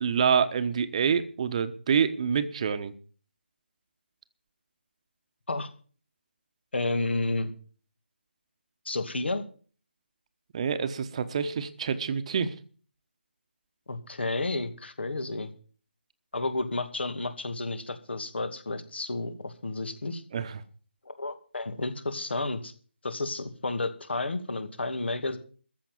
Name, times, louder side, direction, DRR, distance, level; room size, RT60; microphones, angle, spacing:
voice 1, 0.0-2.9 10.5-12.5 20.3-20.6, right 6 dB, 30° right, 11 dB, 1.1 m, -27 dB
voice 2, 6.7-7.5 8.9-9.4 13.9-15.5 16.3-20.2 21.2-22.7 23.0-25.4, left 2 dB, 65° left, 10 dB, 2.4 m, -31 dB
14.5 x 6.3 x 9.4 m, 0.41 s
figure-of-eight pair, 155°, 6 cm